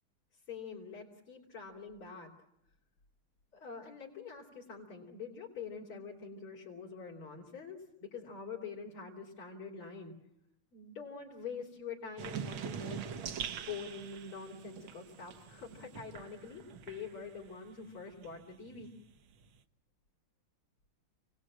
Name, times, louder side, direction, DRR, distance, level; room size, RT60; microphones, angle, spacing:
voice 1, 0.5-2.3 3.5-10.1 10.7-18.9, left 5 dB, 85° left, -3 dB, 4.2 m, -45 dB
sound 1, 12.2-17.5 17.9-19.6, right 8 dB, 75° right, 1.9 m, -44 dB
29.0 x 19.5 x 7.5 m, 0.83 s
omnidirectional pair, 2.3 m